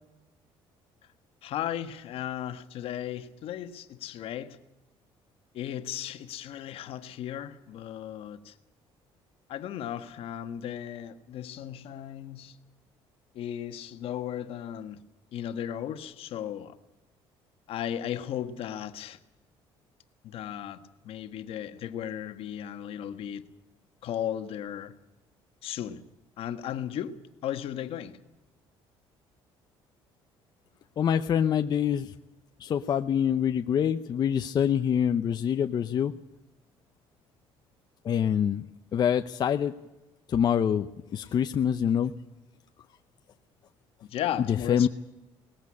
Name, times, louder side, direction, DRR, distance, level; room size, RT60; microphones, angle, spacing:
voice 1, 1.4-4.6 5.5-8.5 9.5-12.6 13.3-15.0 15.3-16.8 17.7-19.2 20.2-23.4 24.0-24.9 25.6-26.0 26.4-27.2 27.4-28.2 44.0-44.9, left 10 dB, 65° left, 1.5 m, -35 dB
voice 2, 31.0-32.1 32.6-36.1 38.0-38.6 38.9-39.7 40.3-40.9 41.1-42.1 44.7-44.9, left 8 dB, 40° left, 0.7 m, -25 dB
19.5 x 15.0 x 9.8 m
cardioid pair, 125°, 10 cm